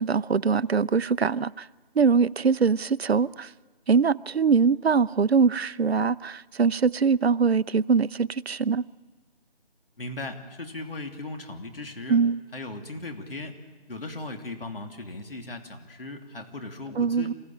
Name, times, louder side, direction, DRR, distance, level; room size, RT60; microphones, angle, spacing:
voice 1, 0.0-1.7 2.0-3.5 3.9-8.8 12.1-12.4 17.0-17.3, right 5 dB, 85° right, 0.7 m, -22 dB
voice 2, 10.0-12.2 12.5-13.5 13.9-17.3, left 2 dB, 65° left, 2.9 m, -37 dB
27.5 x 16.0 x 8.8 m
figure-of-eight pair, 175°, 30 cm